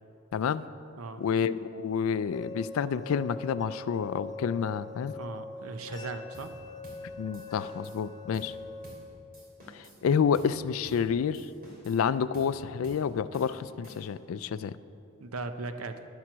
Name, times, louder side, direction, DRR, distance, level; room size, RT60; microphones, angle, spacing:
voice 1, 0.3-0.6 1.2-5.1 7.2-8.5 9.7-11.5 11.9-14.7, left 7 dB, 70° left, 16 dB, 0.3 m, -29 dB
sound 1, 2.3-8.9, left 3 dB, 20° left, 0.6 m, -42 dB
voice 2, 5.1-6.5 15.2-16.1, right 3 dB, 80° right, 9 dB, 0.7 m, -38 dB
sound 2, 6.3-6.6 6.8-7.1 7.3-8.0 8.3-8.6 8.8-9.1 9.3-10.0 10.3-10.6 10.8-11.1 11.3-12.0 12.3-12.6 12.8-13.1 13.3-14.2, right 1 dB, 45° right, 2.9 m, -51 dB
11.0 x 7.4 x 6.1 m, 2.8 s
head